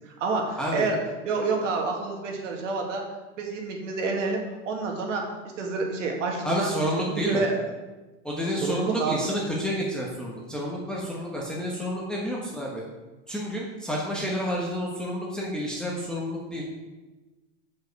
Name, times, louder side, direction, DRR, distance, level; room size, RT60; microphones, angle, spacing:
voice 1, 0.1-1.0 1.2-3.0 3.4-5.2 5.6-6.7 7.2-7.6 8.6-9.2, right 3 dB, 85° right, 1 dB, 1.9 m, -28 dB
voice 2, 6.4-7.4 8.2-12.8 13.3-16.6, equal, ahead, -4 dB, 1.3 m, -29 dB
9.1 x 5.3 x 4.7 m, 1.2 s
supercardioid pair, 130°, 36 cm